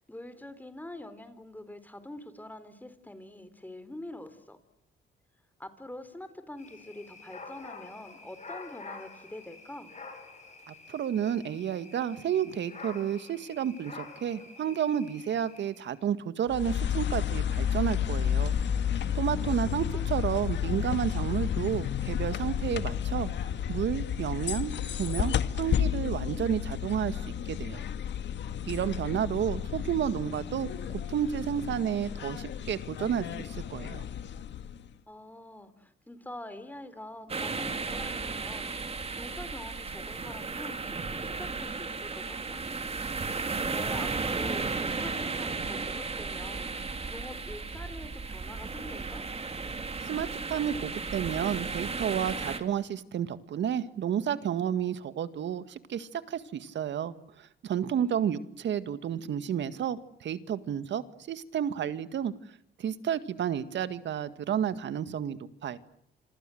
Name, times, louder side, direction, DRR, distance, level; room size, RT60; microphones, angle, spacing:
voice 1, 0.0-4.6 5.6-9.9 19.3-20.1 35.1-42.6 43.6-49.2 57.9-58.5, left 1 dB, 10° left, 12 dB, 3.9 m, -45 dB
sound 1, 6.6-16.0, left 4 dB, 35° left, 7.8 m, -48 dB
voice 2, 10.7-18.6 19.1-23.3 23.7-27.8 28.7-34.0 50.0-62.3 62.8-65.8, right 9 dB, 65° right, 12 dB, 2.0 m, -31 dB
sound 2, 16.5-34.9, left 9 dB, 65° left, 1.8 m, -32 dB
sound 3, 37.3-52.6, right 4 dB, 30° right, 3.2 m, -34 dB
27.5 x 26.0 x 7.9 m, 0.71 s
cardioid pair, 90°, 20 cm